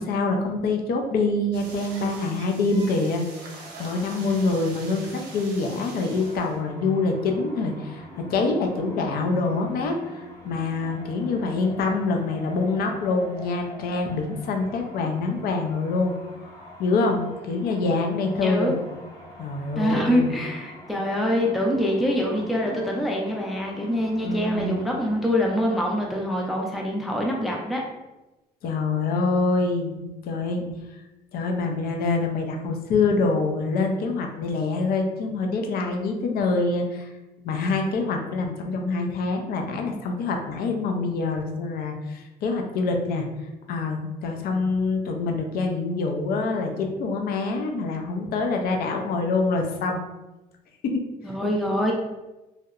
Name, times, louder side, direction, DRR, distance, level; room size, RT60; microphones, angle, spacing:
voice 1, 0.0-16.1 16.4-18.7 19.4-20.3 24.2-24.8 28.6-30.7 31.3-37.1 37.4-43.2 43.7-50.0 50.8-51.0, left 3 dB, 65° left, 3 dB, 0.5 m, -25 dB
sound 1, 1.5-6.6, right 3 dB, 90° right, 0.6 m, -43 dB
sound 2, 6.1-25.8, equal, 20° left, 0.9 m, -44 dB
voice 2, 18.4-18.8 19.8-27.8 51.2-51.9, equal, ahead, -1 dB, 0.3 m, -25 dB
2.8 x 2.0 x 2.3 m, 1.0 s
cardioid pair, 110°, 17 cm